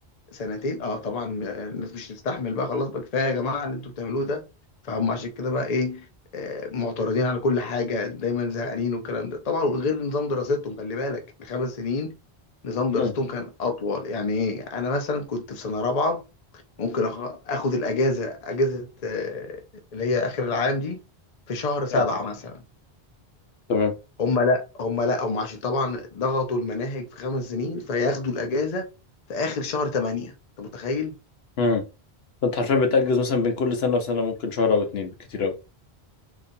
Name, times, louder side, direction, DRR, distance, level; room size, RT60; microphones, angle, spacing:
voice 1, 0.3-4.4 4.8-6.1 6.3-12.1 12.6-16.2 16.8-19.6 19.9-21.0 21.5-22.6 24.2-28.9 29.3-31.1, left 3 dB, 45° left, 0.7 m, -27 dB
voice 2, 32.4-35.5, left 4 dB, 70° left, 1.0 m, -23 dB
4.0 x 2.9 x 2.6 m
omnidirectional pair, 1.1 m